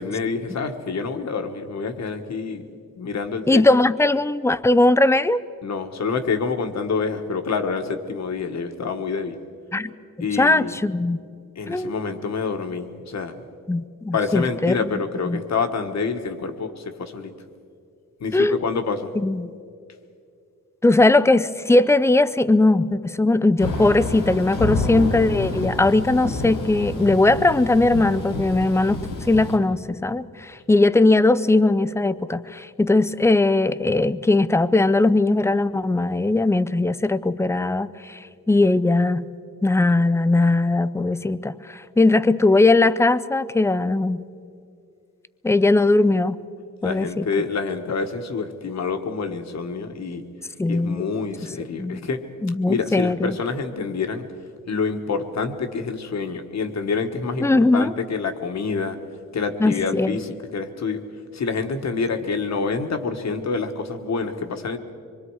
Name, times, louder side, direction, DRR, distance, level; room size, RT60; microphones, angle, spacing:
voice 1, 0.0-2.6 3.0-3.6 5.6-9.4 10.2-10.7 11.5-13.3 14.1-17.3 18.2-19.1 46.8-50.2 50.7-52.2 52.7-54.2 54.7-59.0 59.3-61.0 61.3-64.8, left 5 dB, 55° left, 7 dB, 1.5 m, -27 dB
voice 2, 3.5-5.4 9.7-9.9 10.3-11.2 11.7-12.0 13.7-14.8 15.3-15.4 18.3-18.6 19.2-19.5 20.8-38.2 38.5-39.2 39.6-44.3 45.4-46.4 46.8-47.3 50.6-51.0 51.8-52.0 52.4-53.4 57.4-57.9 59.6-60.1, left 2 dB, 10° left, 14 dB, 0.5 m, -19 dB
Thunder / Rain, 23.6-29.6, left 2 dB, 90° left, 3.9 m, -29 dB
25.0 x 23.0 x 4.8 m, 2.4 s
wide cardioid pair, 120°, 32 cm